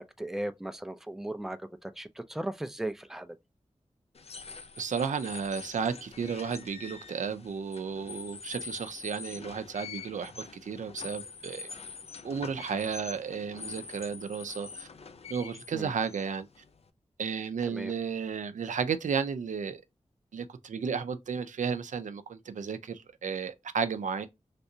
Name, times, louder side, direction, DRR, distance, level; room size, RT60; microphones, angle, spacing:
voice 1, 0.0-3.4 15.7-15.9 17.7-17.9, right 1 dB, 5° right, 0.4 m, -37 dB
sound 1, 4.1-16.9, left 5 dB, 55° left, 0.5 m, -45 dB
voice 2, 4.8-10.3 10.6-11.7 12.2-14.9 15.3-16.5 17.2-19.8 20.3-24.3, right 6 dB, 80° right, 0.4 m, -33 dB
3.3 x 2.7 x 2.7 m
cardioid pair, 45°, 13 cm